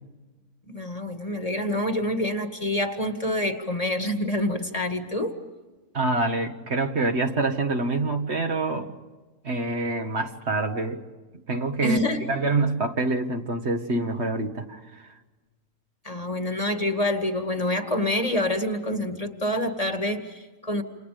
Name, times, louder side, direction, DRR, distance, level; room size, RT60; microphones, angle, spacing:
voice 1, 0.7-5.4 11.8-12.3 16.0-20.8, left 1 dB, 30° left, 5 dB, 2.1 m, -27 dB
voice 2, 5.9-8.9 9.4-11.0 11.5-14.8, right 2 dB, 55° right, 4 dB, 2.0 m, -26 dB
29.0 x 29.0 x 5.2 m, 1.2 s
omnidirectional pair, 1.3 m